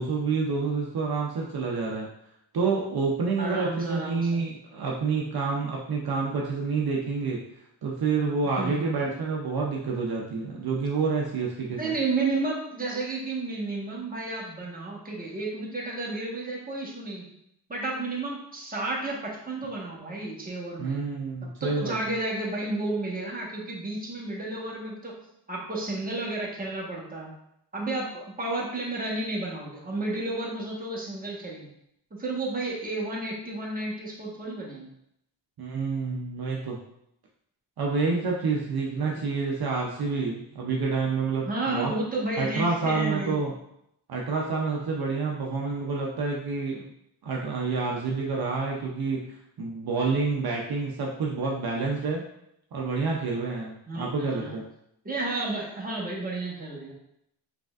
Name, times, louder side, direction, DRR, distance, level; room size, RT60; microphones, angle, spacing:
voice 1, 0.0-2.1 2.5-7.4 7.8-11.9 20.8-22.0 35.6-36.8 37.8-41.9 42.4-43.5 44.1-46.8 47.2-49.2 49.6-52.2 52.7-54.6, right 4 dB, 60° right, -1 dB, 0.7 m, -28 dB
voice 2, 3.4-4.4 8.6-9.1 11.7-17.2 17.7-21.0 21.6-25.1 25.5-27.3 27.7-31.7 32.2-34.9 39.0-39.2 41.5-43.3 53.9-54.5 55.0-56.9, right 2 dB, 20° right, -4 dB, 1.3 m, -32 dB
4.9 x 3.4 x 2.4 m, 0.76 s
cardioid pair, 85°, 43 cm